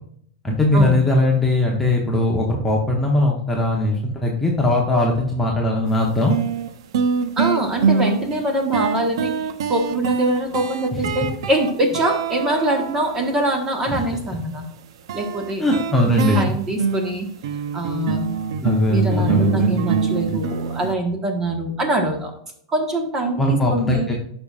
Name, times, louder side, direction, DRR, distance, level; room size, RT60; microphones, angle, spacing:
voice 1, 0.4-6.3 11.0-11.1 13.8-14.1 15.6-16.5 18.6-19.8 23.4-24.2, left 1 dB, 5° left, -2 dB, 0.8 m, -20 dB
sound 1, 5.9-6.0 6.3-13.6 15.1-20.9, right 6 dB, 70° right, 0.7 m, -24 dB
voice 2, 7.4-9.3 9.7-14.7 15.1-15.6 16.2-17.3 17.7-18.4 18.9-22.3 22.7-24.1, right 1 dB, 15° right, 3 dB, 1.2 m, -23 dB
12.0 x 5.4 x 2.5 m, 0.66 s
supercardioid pair, 165°, 3 cm